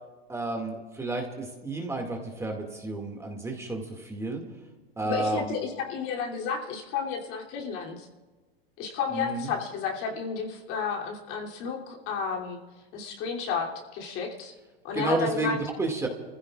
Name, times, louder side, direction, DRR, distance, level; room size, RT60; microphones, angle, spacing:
voice 1, 0.3-4.4 5.0-5.6 9.1-9.5 14.9-16.1, right 2 dB, 10° right, 1 dB, 2.1 m, -31 dB
voice 2, 5.0-8.1 8.8-12.6 12.9-14.5 14.8-15.6, left 6 dB, 45° left, 0 dB, 3.0 m, -32 dB
30.0 x 15.5 x 2.4 m, 1.3 s
hypercardioid pair, 120°, 31 cm